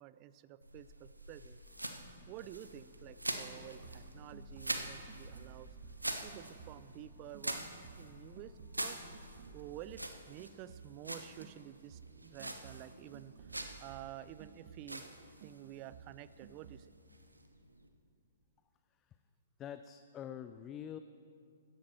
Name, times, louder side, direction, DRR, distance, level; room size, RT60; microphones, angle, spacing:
voice 1, 0.0-1.6 2.3-5.7 6.2-7.7 8.0-9.0 9.5-10.0 10.3-13.5 13.8-15.0 15.4-16.9, right 13 dB, 30° right, 15 dB, 0.5 m, -50 dB
sound 1, 0.6-17.9, right 1 dB, 90° right, 1.1 m, -45 dB
sound 2, 1.6-10.0, equal, 10° right, 2.4 m, -66 dB
sound 3, 3.8-7.0 7.3-11.1 11.4-15.1 15.4-16.8, right 7 dB, 50° right, 0.9 m, -56 dB
voice 2, 19.6-21.0, left 9 dB, 20° left, 10 dB, 0.5 m, -45 dB
16.5 x 13.5 x 4.4 m, 2.4 s
figure-of-eight pair, 120°, 0 cm